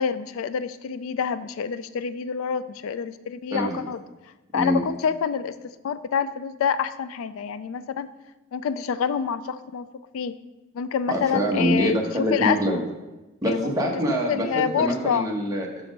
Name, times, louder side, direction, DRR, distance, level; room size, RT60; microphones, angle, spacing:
voice 1, 0.0-4.0 4.5-8.1 8.5-9.9 10.1-10.4 10.7-12.9 13.5-13.9 14.3-15.3, left 7 dB, 70° left, 14 dB, 0.3 m, -27 dB
voice 2, 3.5-3.8 4.5-4.8 11.1-12.8 13.4-15.9, equal, 15° right, -1 dB, 1.1 m, -25 dB
6.2 x 6.0 x 5.1 m, 1.1 s
head